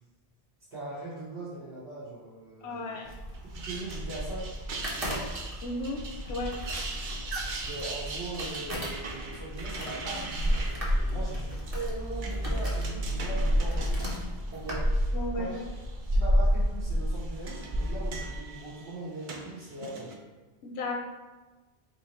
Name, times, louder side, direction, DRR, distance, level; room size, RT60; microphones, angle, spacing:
voice 1, 0.7-3.2 3.5-5.2 7.4-15.8 16.1-20.1, right 2 dB, 85° right, -11 dB, 1.8 m, -40 dB
voice 2, 2.6-3.1 5.6-6.0 6.3-6.5 15.1-15.5 20.6-21.0, left 2 dB, 85° left, 1 dB, 0.8 m, -34 dB
sound 1, 3.0-18.4, equal, 35° right, 1.0 m, -31 dB
sound 2, 3.3-15.1 15.5-16.1 16.9-20.1, right 3 dB, 55° right, 0.7 m, -42 dB
3.8 x 2.8 x 4.3 m, 1.2 s
omnidirectional pair, 1.1 m